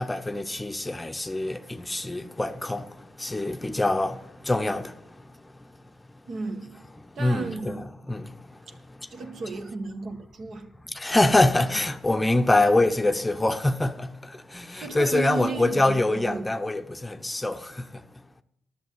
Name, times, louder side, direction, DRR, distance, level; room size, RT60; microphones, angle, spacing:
voice 1, 0.0-5.5 6.9-9.6 10.9-18.0, left 2 dB, 15° left, 0.8 m, -25 dB
voice 2, 6.3-6.8 7.1-7.9 9.1-10.7 14.8-16.5, right 4 dB, 60° right, 1.6 m, -34 dB
11.5 x 7.0 x 9.3 m
supercardioid pair, 70°, 0 cm